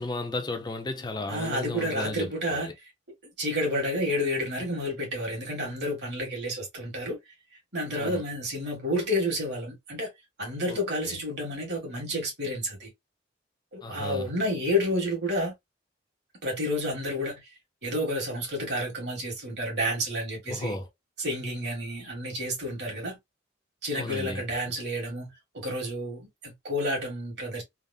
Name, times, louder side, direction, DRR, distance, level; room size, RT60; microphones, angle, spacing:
voice 1, 0.0-2.7 7.9-8.2 10.7-11.1 13.8-14.3 20.5-20.9 23.9-24.4, left 2 dB, 25° left, 0.5 m, -34 dB
voice 2, 1.3-2.7 3.4-7.2 7.7-10.1 10.4-12.9 13.7-15.5 16.4-17.4 17.8-20.7 21.2-23.2 23.8-27.6, equal, 60° right, 1.6 m, -30 dB
3.4 x 2.0 x 2.4 m
head